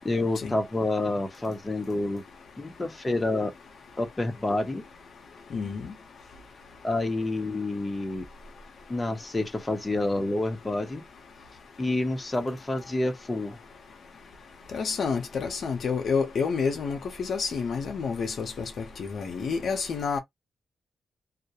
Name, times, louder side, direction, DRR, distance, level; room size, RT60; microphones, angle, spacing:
voice 1, 0.0-2.2 2.6-3.5 4.0-4.8 6.8-8.2 8.9-11.0 11.8-13.6, left 2 dB, 20° left, 0.8 m, -28 dB
voice 2, 5.5-5.9 14.7-20.2, left 5 dB, 70° left, 0.7 m, -29 dB
2.3 x 2.1 x 2.8 m
cardioid pair, 90°, 0 cm